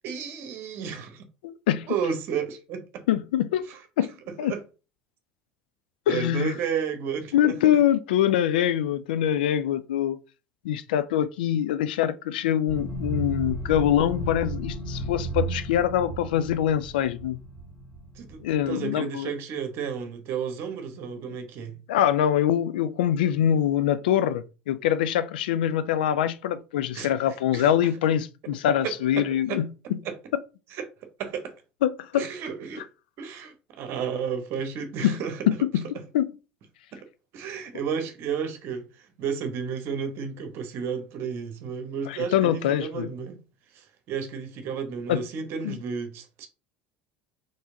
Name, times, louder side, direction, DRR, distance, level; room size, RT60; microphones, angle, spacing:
voice 1, 0.0-1.2 1.9-3.1 3.7-4.6 6.1-7.6 18.2-21.7 26.9-27.1 27.5-27.7 28.8-29.6 30.0-30.2 30.7-30.8 31.2-31.5 32.1-32.9 33.2-35.4 35.9-36.0 36.9-37.1 37.3-43.4 43.7-46.5, right 6 dB, 50° right, 0.9 m, -32 dB
voice 2, 1.4-1.9 3.1-3.6 4.0-4.1 4.4-4.5 6.1-6.5 7.3-10.2 10.6-17.4 18.4-19.3 21.9-30.0 31.8-32.2 35.0-35.2 35.5-35.9 36.1-36.3 42.1-43.1 45.1-45.2 45.6-45.8, left 10 dB, 65° left, 0.3 m, -24 dB
sound 1, 12.7-18.7, right 2 dB, 30° left, 2.0 m, -34 dB
4.4 x 3.1 x 2.6 m
figure-of-eight pair, 65°, 5 cm